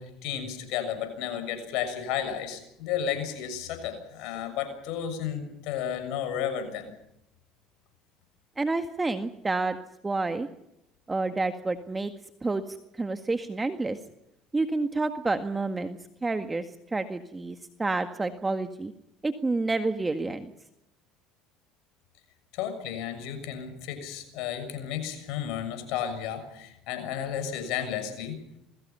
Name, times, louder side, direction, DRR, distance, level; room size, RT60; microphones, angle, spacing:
voice 1, 0.0-6.9 22.5-28.4, left 9 dB, 70° left, 9 dB, 6.6 m, -33 dB
voice 2, 8.6-9.8 10.0-10.5 11.1-12.1 12.4-14.0 14.5-18.9 19.2-20.5, right 3 dB, 20° right, 8 dB, 1.8 m, -29 dB
28.0 x 22.0 x 5.7 m, 0.80 s
supercardioid pair, 80°, 0 cm